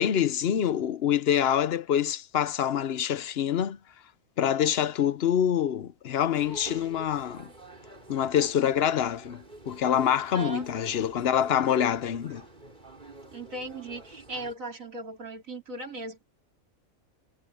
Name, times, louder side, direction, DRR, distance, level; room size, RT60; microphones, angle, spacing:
voice 1, 0.0-3.8 4.4-7.5 8.1-12.4, left 9 dB, 55° left, 0.8 m, -26 dB
sound 1, 6.3-14.5, right 2 dB, 35° right, 4.5 m, -47 dB
voice 2, 10.3-11.0 13.3-16.2, right 2 dB, 80° right, 3.6 m, -38 dB
omnidirectional pair, 1.4 m